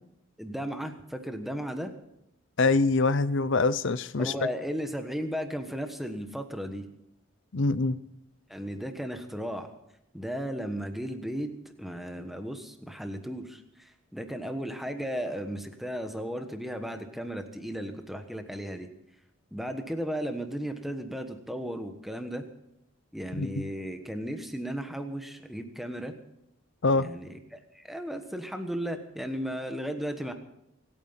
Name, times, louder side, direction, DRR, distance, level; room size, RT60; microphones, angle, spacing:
voice 1, 0.4-1.9 4.2-6.8 8.5-9.7 10.1-11.5 11.8-18.9 19.5-22.5 23.1-26.2 26.9-30.3, equal, ahead, 6 dB, 1.3 m, -35 dB
voice 2, 2.6-4.3 7.5-8.0 23.4-23.7 26.8-27.1, left 3 dB, 60° left, 17 dB, 0.6 m, -24 dB
25.0 x 9.1 x 5.8 m, 0.81 s
head